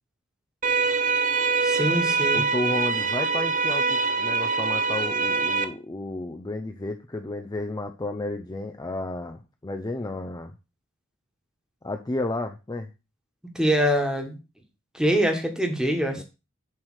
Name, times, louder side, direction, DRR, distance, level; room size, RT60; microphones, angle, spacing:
sound 1, 0.6-5.6, right 4 dB, 40° right, 0.7 m, -24 dB
voice 1, 1.6-2.4 13.5-14.4 14.9-16.2, equal, 5° right, 3 dB, 1.4 m, -24 dB
voice 2, 2.3-10.5 11.8-12.9 16.1-16.2, left 2 dB, 20° left, 5 dB, 0.5 m, -32 dB
7.3 x 3.3 x 6.3 m, 0.29 s
head